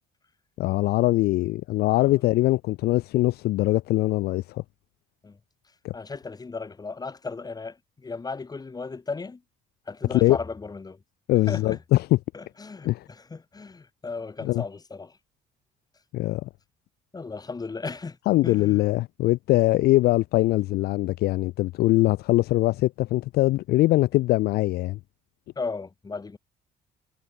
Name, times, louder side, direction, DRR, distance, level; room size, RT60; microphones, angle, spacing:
voice 1, 0.6-4.6 5.8-5.9 10.1-10.4 11.3-12.2 12.8-13.0 14.4-14.6 16.1-16.5 18.3-25.0, left 18 dB, 70° left, 0.4 m, -22 dB
voice 2, 5.9-9.4 9.9-11.0 11.5-11.8 12.3-15.2 17.1-18.2 18.4-18.8 25.6-26.4, left 4 dB, 20° left, 5.4 m, -36 dB
cardioid pair, 110°, 17 cm